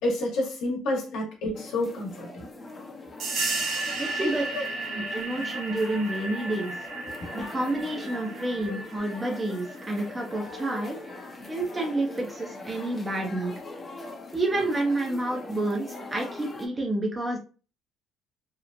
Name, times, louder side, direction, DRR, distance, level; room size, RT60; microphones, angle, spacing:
voice 1, 0.0-2.5 4.2-4.6 5.5-5.6 7.2-7.3 8.6-8.8, left 1 dB, 75° left, -2 dB, 1.0 m, -30 dB
sound 1, 1.5-16.7, left 2 dB, 30° left, 0.6 m, -42 dB
sound 2, 3.2-11.5, right 2 dB, 65° right, 0.9 m, -35 dB
voice 2, 3.9-4.4 4.9-6.7 7.3-11.0 11.5-13.6 14.3-17.4, right 2 dB, 20° right, 0 dB, 0.6 m, -29 dB
2.9 x 2.1 x 2.5 m, 0.36 s
supercardioid pair, 75°, 0 cm